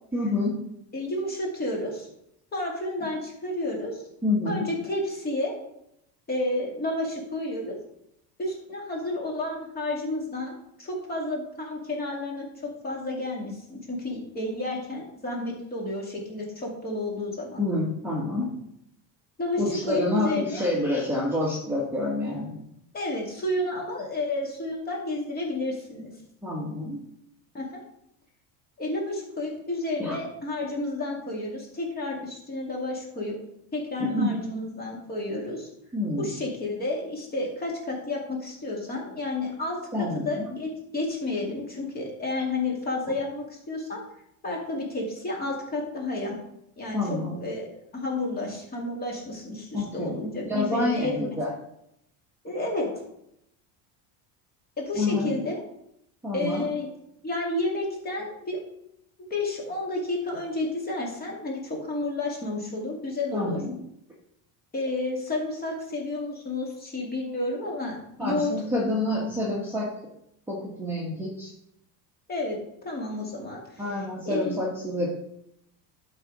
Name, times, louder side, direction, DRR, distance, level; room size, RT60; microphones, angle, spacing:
voice 1, 0.1-0.6 4.2-4.7 17.6-18.5 19.6-22.6 26.4-27.0 30.0-30.2 34.0-34.3 35.9-36.3 39.9-40.4 46.9-47.4 49.7-50.1 50.4-51.5 55.0-55.3 56.2-56.7 63.3-63.8 68.2-69.9 70.5-71.5 73.8-75.2, left 2 dB, 5° right, -5 dB, 1.3 m, -28 dB
voice 2, 0.9-2.1 2.5-4.0 4.5-5.5 6.3-7.8 8.4-17.6 19.4-20.6 22.9-26.1 27.5-27.7 28.8-33.3 33.7-35.7 36.2-44.0 44.4-46.4 46.8-47.7 47.9-51.4 52.4-52.9 54.8-55.6 56.3-56.9 57.2-58.6 59.3-63.6 64.7-68.5 72.3-72.6 72.8-74.6, left 2 dB, 25° left, -1 dB, 2.3 m, -31 dB
11.5 x 4.2 x 4.8 m, 0.78 s
cardioid pair, 150°, 40 cm